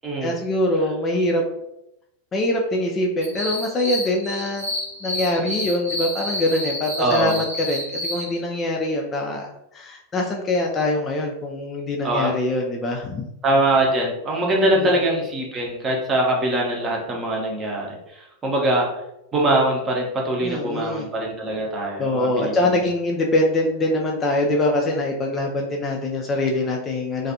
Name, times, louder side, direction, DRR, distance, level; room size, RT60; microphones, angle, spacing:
voice 1, 0.2-1.4 2.3-4.7 5.0-13.3 14.7-14.9 20.4-21.1 22.0-27.3, left 1 dB, 25° left, 0 dB, 0.3 m, -23 dB
sound 1, 3.2-8.4, left 1 dB, 90° right, 0.8 m, -30 dB
voice 2, 7.0-7.4 12.0-12.4 13.4-18.9 19.3-22.5, right 1 dB, 25° right, -1 dB, 0.7 m, -22 dB
2.4 x 2.3 x 2.6 m, 0.84 s
figure-of-eight pair, 90°, 0 cm